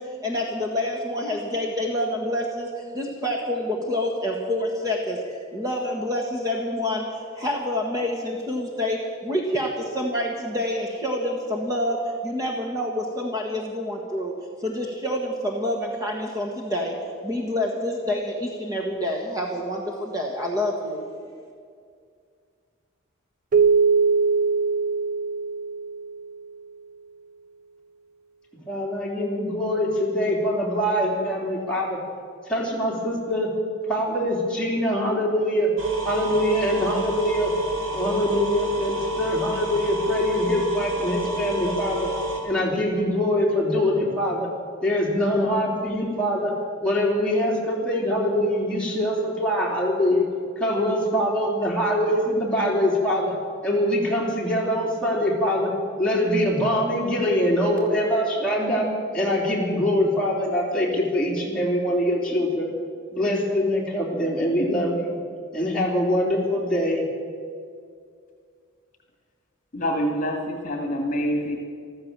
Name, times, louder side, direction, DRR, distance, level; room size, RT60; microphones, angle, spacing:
voice 1, 0.0-14.3 14.6-21.0, left 1 dB, 15° right, 0 dB, 1.5 m, -27 dB
Keyboard (musical), 23.5-26.5, right 5 dB, 40° right, 0.4 m, -22 dB
voice 2, 28.7-32.0 32.5-33.5 33.9-35.7 36.0-37.5 37.9-42.1 42.4-44.5 44.8-46.5 46.8-50.2 50.6-53.3 53.6-55.7 56.0-58.9 59.1-62.7 63.1-65.2 65.5-67.0, left 1 dB, 5° left, -5 dB, 3.3 m, -23 dB
sound 1, 35.8-42.4, right 1 dB, 65° right, 2.9 m, -29 dB
voice 3, 69.7-71.6, equal, 40° left, 2 dB, 1.9 m, -26 dB
14.5 x 13.5 x 7.4 m, 2.2 s
head